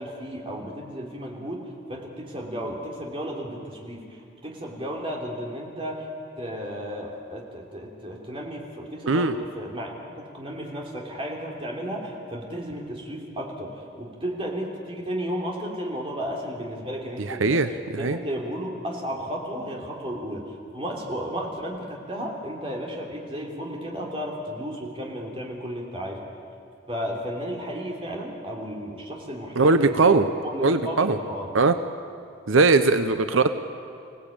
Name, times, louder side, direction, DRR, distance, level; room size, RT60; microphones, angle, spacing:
voice 1, 0.0-6.1 6.4-17.6 17.9-26.3 26.9-31.5 33.3-33.4, equal, 25° right, -1 dB, 3.3 m, -33 dB
voice 2, 17.3-17.7 18.0-18.2 29.6-30.3 30.6-31.2 31.5-31.7 32.5-33.5, right 3 dB, 85° right, 10 dB, 0.8 m, -19 dB
25.5 x 17.5 x 8.8 m, 2.5 s
head